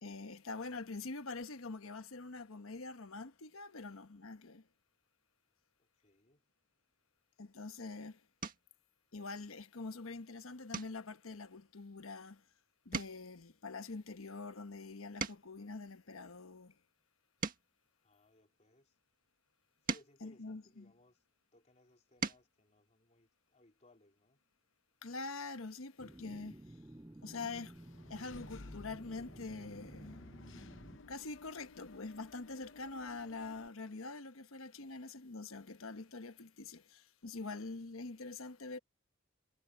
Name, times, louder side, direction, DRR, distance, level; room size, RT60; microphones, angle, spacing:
voice 1, 0.0-4.7 7.4-8.2 9.1-12.4 12.8-16.8 20.2-20.9 25.0-26.6 27.2-30.2 31.1-38.8, left 3 dB, 85° left, 1.2 m, -45 dB
voice 2, 5.8-6.5 18.0-18.9 19.8-21.2 21.5-24.4, left 1 dB, 35° left, 3.6 m, -67 dB
sound 1, 7.5-7.8 8.4-8.8 9.3-9.7 10.0-10.2 10.7-12.5 12.8-15.7 16.3-18.8 19.5-21.3 21.8-22.6 24.0-24.1 24.4-24.5, right 4 dB, 45° right, 1.8 m, -45 dB
sound 2, 26.0-31.0, right 1 dB, 15° right, 0.6 m, -54 dB
Engine / Mechanisms, 27.7-33.7, left 2 dB, 65° left, 0.9 m, -55 dB
head